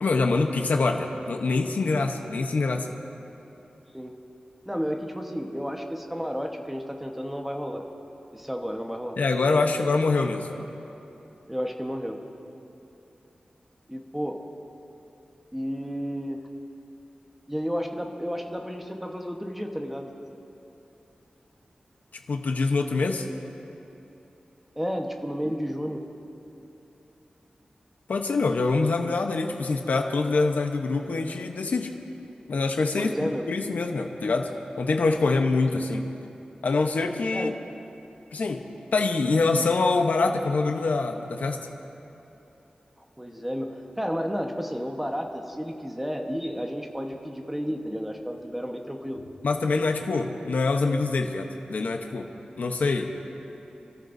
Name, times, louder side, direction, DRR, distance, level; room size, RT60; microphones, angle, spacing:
voice 1, 0.0-3.0 9.2-10.5 22.3-23.3 28.1-31.9 32.5-34.5 34.8-36.1 36.6-37.5 38.3-38.7 38.9-41.6 49.4-52.3 52.6-53.1, left 3 dB, 75° left, 4 dB, 0.9 m, -25 dB
voice 2, 4.6-7.8 8.3-9.2 11.5-12.2 13.9-14.4 15.5-16.4 17.5-20.1 24.7-26.0 33.0-33.4 37.3-37.5 43.2-49.2, equal, 5° right, 2 dB, 1.2 m, -32 dB
29.5 x 13.5 x 2.7 m, 3.0 s
wide cardioid pair, 110°, 3 cm